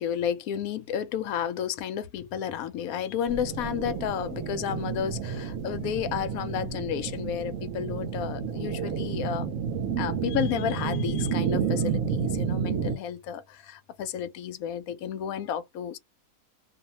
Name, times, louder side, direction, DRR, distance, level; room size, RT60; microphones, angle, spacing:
voice 1, 0.0-9.5 10.0-16.0, left 9 dB, 75° left, 1.0 m, -32 dB
sound 1, 3.3-13.0, right 7 dB, 70° right, 1.0 m, -30 dB
2.6 x 2.1 x 2.8 m
omnidirectional pair, 1.5 m